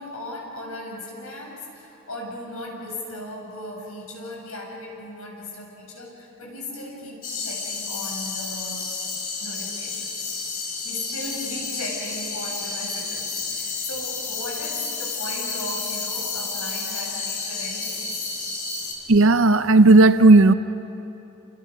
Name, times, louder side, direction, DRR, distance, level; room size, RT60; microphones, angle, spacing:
voice 1, 0.0-9.0 9.4-10.2 10.6-18.3, left 1 dB, 90° left, 7.8 m, -37 dB
sound 1, 7.2-18.9, left 4 dB, 40° left, 4.1 m, -31 dB
voice 2, 19.1-20.5, right 2 dB, 75° right, 0.7 m, -13 dB
30.0 x 28.5 x 6.5 m
head